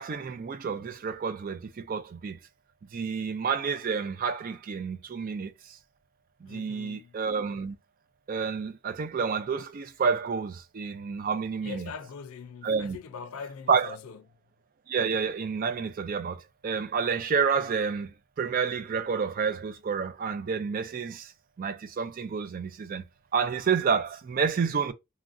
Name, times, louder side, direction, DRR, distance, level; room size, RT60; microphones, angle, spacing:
voice 1, 0.0-2.4 2.9-5.8 6.4-7.8 8.3-11.9 12.6-13.0 13.7-14.0 14.9-21.3 21.6-23.1 23.3-24.9, right 6 dB, 40° right, 0.3 m, -29 dB
voice 2, 6.4-7.2 11.6-14.2, left 6 dB, 90° left, 0.4 m, -42 dB
3.0 x 2.4 x 2.4 m
head